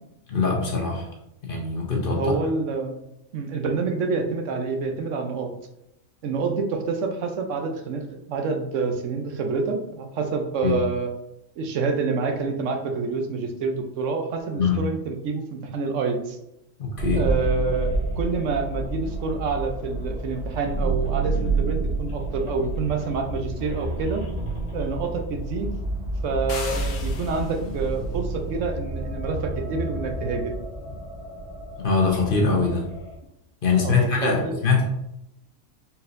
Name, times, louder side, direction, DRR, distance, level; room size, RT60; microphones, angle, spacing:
voice 1, 0.3-1.1 1.4-2.3 10.6-10.8 14.6-14.8 16.8-17.2 31.8-32.9 33.6-34.8, left 4 dB, 50° left, 0 dB, 0.8 m, -23 dB
voice 2, 2.1-2.9 3.3-5.5 6.2-11.1 11.6-16.4 17.1-24.2 24.7-25.7 26.2-30.5 33.8-34.6, right 4 dB, 75° right, 4 dB, 1.0 m, -27 dB
sound 1, 17.0-33.2, right 2 dB, 25° left, 1.4 m, -29 dB
sound 2, 26.5-27.8, left 4 dB, 75° left, 1.1 m, -36 dB
4.1 x 4.0 x 2.6 m, 0.84 s
omnidirectional pair, 1.3 m